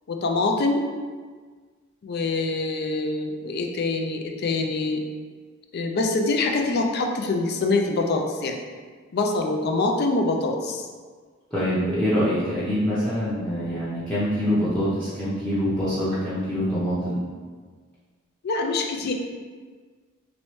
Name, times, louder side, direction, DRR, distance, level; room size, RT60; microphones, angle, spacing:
voice 1, 0.1-0.9 2.0-5.0 5.7-8.6 9.1-10.8 18.4-19.1, left 3 dB, 55° left, 2 dB, 0.4 m, -24 dB
voice 2, 11.5-17.2, equal, 5° left, -13 dB, 0.7 m, -25 dB
3.1 x 3.0 x 3.0 m, 1.5 s
head